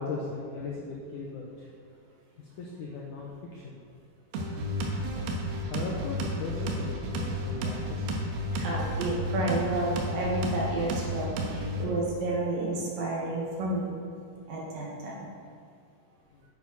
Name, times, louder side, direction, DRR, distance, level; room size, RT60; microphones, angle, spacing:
voice 1, 0.0-1.7 2.4-3.8 5.7-8.0 16.3-16.4, left 3 dB, 85° left, -2 dB, 1.7 m, -38 dB
sound 1, 4.3-11.9, equal, 80° right, 3.1 m, -32 dB
voice 2, 8.5-14.0 14.5-15.3, right 2 dB, 65° right, -4 dB, 3.0 m, -31 dB
9.4 x 9.2 x 4.1 m, 2.2 s
omnidirectional pair, 4.7 m